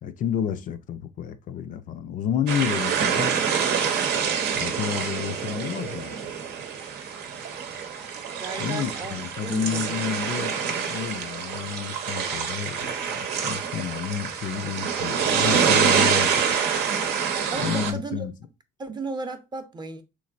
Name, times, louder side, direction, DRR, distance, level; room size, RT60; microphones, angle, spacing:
voice 1, 0.0-3.3 4.5-6.4 8.6-16.6 17.6-18.3, left 8 dB, 50° left, 0.4 m, -30 dB
sound 1, 2.5-17.9, right 7 dB, 80° right, 0.8 m, -26 dB
voice 2, 8.4-10.2 17.5-18.3 18.8-20.0, right 4 dB, 25° right, 0.6 m, -35 dB
3.7 x 3.1 x 2.4 m
cardioid pair, 110°, 17 cm